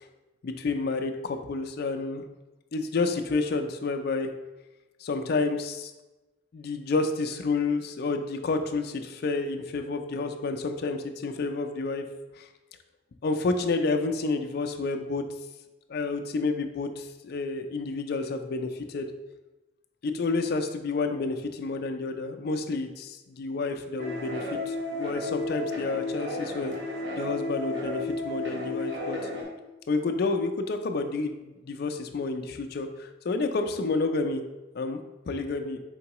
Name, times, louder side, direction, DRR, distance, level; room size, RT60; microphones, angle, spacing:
voice 1, 0.4-2.2 2.7-4.3 5.0-5.9 6.5-12.0 12.4-12.5 13.2-15.2 15.9-19.1 20.0-26.7 27.2-29.3 29.9-34.4 34.7-35.8, left 3 dB, 55° left, 6 dB, 0.4 m, -29 dB
sound 1, 24.0-29.4, left 2 dB, 70° right, 1.0 m, -33 dB
4.4 x 3.8 x 2.9 m, 1.1 s
head